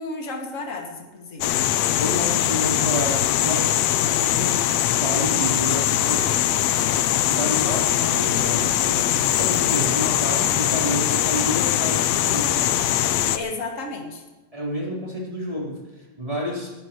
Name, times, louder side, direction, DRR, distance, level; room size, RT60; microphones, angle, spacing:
voice 1, 0.0-1.6 7.4-7.6 13.3-14.2, left 3 dB, 30° left, 1 dB, 2.2 m, -33 dB
sound 1, 1.4-13.4, left 12 dB, 75° left, 1.8 m, -21 dB
voice 2, 2.0-3.8 4.1-6.3 7.3-12.6 14.5-16.7, equal, 10° right, -4 dB, 4.0 m, -30 dB
20.5 x 14.0 x 3.2 m, 1.2 s
omnidirectional pair, 3.4 m